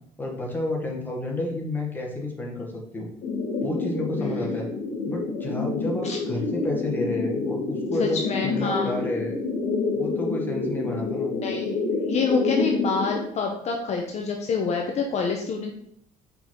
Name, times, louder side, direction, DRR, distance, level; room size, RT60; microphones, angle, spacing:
voice 1, 0.2-3.1 3.6-4.7 5.1-9.4 9.9-11.3, left 2 dB, 15° left, -2 dB, 1.7 m, -30 dB
sound 1, 3.2-13.2, left 3 dB, 65° left, 1.2 m, -28 dB
voice 2, 4.2-4.5 6.0-6.2 8.0-9.0 11.4-11.7 12.1-15.7, left 4 dB, 45° left, 2 dB, 0.8 m, -27 dB
5.7 x 4.1 x 4.5 m, 0.71 s
cardioid pair, 125°, 15 cm